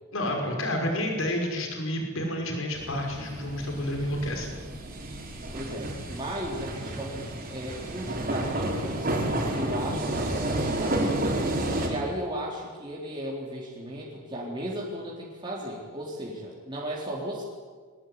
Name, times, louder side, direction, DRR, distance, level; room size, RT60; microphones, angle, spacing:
voice 1, 0.1-4.5, left 1 dB, 85° left, 2 dB, 6.0 m, -30 dB
sound 1, 2.7-11.9, right 1 dB, 45° right, 4.9 m, -31 dB
voice 2, 5.5-9.2 9.5-11.3 11.8-17.4, right 1 dB, 25° right, -4 dB, 3.8 m, -35 dB
23.5 x 19.0 x 9.7 m, 1.5 s
head